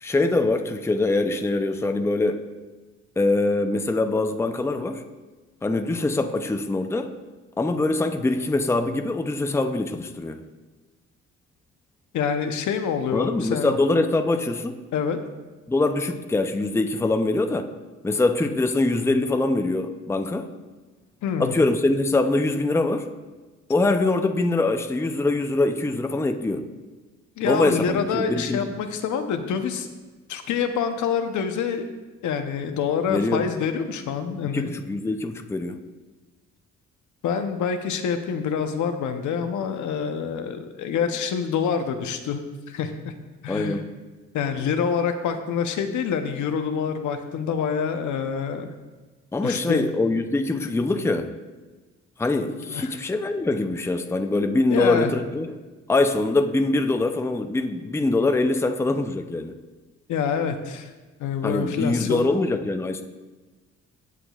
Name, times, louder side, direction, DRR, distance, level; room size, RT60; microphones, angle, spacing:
voice 1, 0.0-2.4 3.2-5.0 5.6-7.1 7.6-10.4 13.1-14.8 15.7-17.7 18.0-20.5 21.4-23.1 23.7-26.6 27.4-28.7 33.1-33.4 34.5-35.8 43.5-43.8 49.3-51.3 52.2-55.5 55.9-59.5 61.4-63.0, left 2 dB, 10° left, 6 dB, 0.5 m, -23 dB
voice 2, 12.1-13.7 14.9-15.2 21.2-21.5 27.4-29.9 30.3-31.9 32.2-34.7 37.2-42.4 42.7-43.1 43.4-43.8 44.3-48.7 49.4-49.9 52.7-52.9 54.7-55.1 60.1-60.9 61.2-62.3, left 7 dB, 75° left, 7 dB, 0.8 m, -26 dB
16.0 x 6.0 x 2.4 m, 1.2 s
cardioid pair, 90°, 30 cm